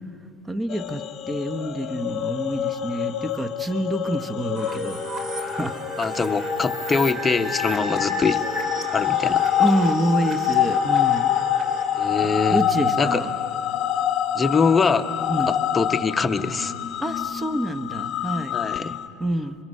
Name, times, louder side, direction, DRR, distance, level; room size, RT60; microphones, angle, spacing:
voice 1, 0.5-5.0 5.4-5.8 9.6-11.3 12.2-13.3 15.3-15.5 17.0-18.5 19.2-19.6, right 1 dB, 15° right, 9 dB, 1.0 m, -27 dB
sound 1, 0.7-19.1, left 10 dB, 45° left, 1.0 m, -26 dB
sound 2, 4.6-13.2, right 1 dB, 40° right, 2.6 m, -34 dB
voice 2, 6.0-8.4 8.9-9.4 11.9-12.6 13.0-13.2 14.3-15.1 15.5-16.7 18.5-19.0, left 4 dB, 20° left, 7 dB, 0.9 m, -23 dB
25.5 x 22.5 x 5.5 m, 2.6 s
supercardioid pair, 115°, 0 cm